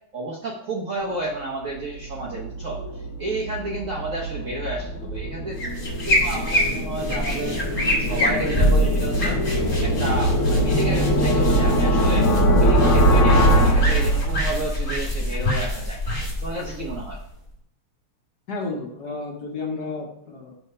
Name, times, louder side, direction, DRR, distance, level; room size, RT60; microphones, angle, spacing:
voice 1, 0.1-5.6 6.0-7.6 8.0-9.4 9.8-12.3 12.6-16.0 16.4-17.2, right 2 dB, 55° right, -4 dB, 1.0 m, -31 dB
sound 1, 1.8-14.7, equal, 70° left, 1.6 m, -22 dB
sound 2, 5.5-17.5, equal, 25° left, 1.6 m, -25 dB
voice 2, 18.5-20.5, left 3 dB, 55° left, -1 dB, 1.5 m, -32 dB
5.6 x 3.5 x 5.4 m, 0.70 s
omnidirectional pair, 2.4 m